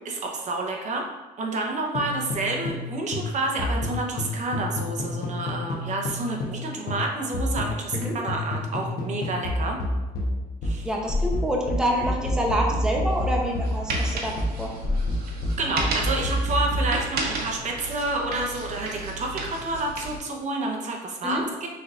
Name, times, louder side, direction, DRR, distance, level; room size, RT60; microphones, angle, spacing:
voice 1, 0.0-1.1 1.4-9.8 10.6-10.9 15.6-21.7, right 2 dB, 45° right, 1 dB, 0.7 m, -29 dB
sound 1, 1.9-2.9 3.1-6.6 6.9-17.0, left 1 dB, 65° left, 1.0 m, -28 dB
voice 2, 10.8-14.7 21.2-21.4, equal, 5° right, -1 dB, 0.7 m, -27 dB
sound 2, 13.1-20.2, right 3 dB, 65° right, 1.0 m, -33 dB
6.1 x 3.3 x 2.4 m, 1.1 s
cardioid pair, 110°, 17 cm